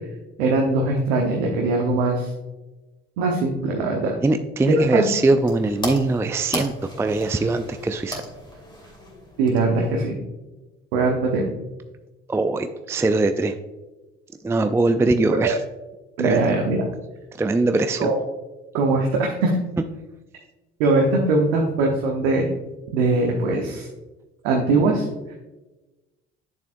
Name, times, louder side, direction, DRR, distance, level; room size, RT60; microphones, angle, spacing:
voice 1, 0.4-2.3 3.2-4.1 4.7-5.1 9.4-10.2 10.9-11.5 15.4-15.5 16.2-16.8 18.0-18.2 18.7-19.5 20.8-22.5 22.9-23.9 24.4-25.1, right 3 dB, 80° right, 0 dB, 1.0 m, -21 dB
voice 2, 4.2-8.2 12.3-13.5 14.4-15.6 16.2-16.4 17.4-18.1, right 2 dB, 10° right, 9 dB, 0.4 m, -21 dB
sound 1, 4.6-10.0, left 1 dB, 15° left, 2.6 m, -36 dB
8.7 x 6.8 x 2.5 m, 1.1 s
hypercardioid pair, 55°, 31 cm